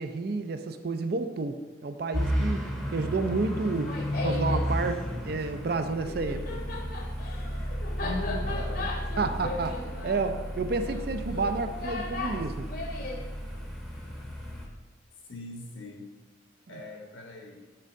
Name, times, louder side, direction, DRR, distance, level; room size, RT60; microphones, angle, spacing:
voice 1, 0.0-2.6 2.9-4.0 4.2-6.6 9.2-12.7, right 3 dB, 50° right, 8 dB, 0.4 m, -30 dB
sound 1, 2.1-14.7, equal, ahead, 0.7 m, -33 dB
Laughter, 3.6-4.7 5.9-13.2, left 2 dB, 45° left, 0.8 m, -37 dB
voice 2, 8.0-8.9 15.2-16.1 16.7-17.6, left 2 dB, 90° left, 1 dB, 1.3 m, -39 dB
6.7 x 3.6 x 5.2 m, 1.3 s
head